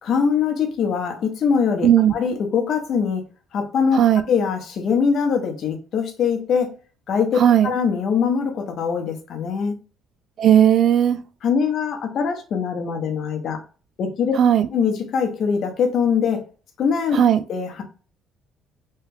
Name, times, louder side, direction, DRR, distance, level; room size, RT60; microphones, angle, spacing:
voice 1, 0.0-3.2 3.5-4.0 4.3-6.7 7.1-9.8 11.4-13.6 14.0-14.4 14.7-16.4 16.8-17.2 17.5-17.8, left 6 dB, 55° left, 0.8 m, -22 dB
voice 2, 1.8-2.1 4.0-4.2 7.4-7.7 10.4-11.2 14.4-14.7 17.1-17.4, right 10 dB, 55° right, 0.3 m, -15 dB
3.1 x 2.3 x 3.3 m
cardioid pair, 105°, 0 cm